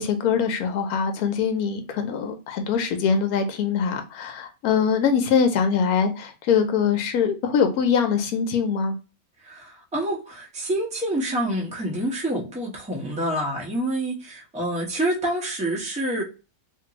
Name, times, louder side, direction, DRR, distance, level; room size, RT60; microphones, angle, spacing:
voice 1, 0.0-8.9, left 6 dB, 80° left, 1.1 m, -23 dB
voice 2, 9.4-16.2, right 1 dB, 5° right, 0.6 m, -27 dB
2.6 x 2.6 x 2.9 m
omnidirectional pair, 1.6 m